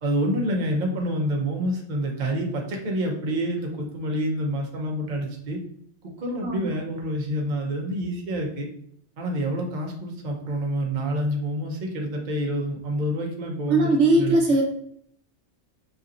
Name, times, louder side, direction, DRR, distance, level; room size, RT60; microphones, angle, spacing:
voice 1, 0.0-5.6 6.0-8.7 9.2-14.4, equal, 45° right, 0 dB, 0.9 m, -27 dB
voice 2, 13.7-14.6, right 2 dB, 70° right, 1 dB, 1.1 m, -19 dB
5.5 x 2.8 x 2.5 m, 0.65 s
omnidirectional pair, 1.2 m